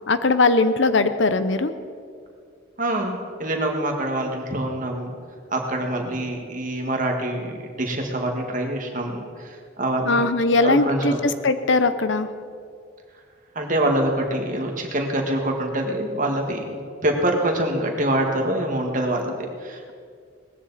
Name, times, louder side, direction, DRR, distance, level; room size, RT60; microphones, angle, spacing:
voice 1, 0.1-1.7 10.0-12.3, left 3 dB, 65° left, 11 dB, 0.7 m, -20 dB
voice 2, 2.8-5.1 5.5-10.2 10.6-11.2 13.6-19.9, right 1 dB, 40° right, 2 dB, 1.9 m, -25 dB
19.0 x 14.5 x 4.2 m, 2.2 s
head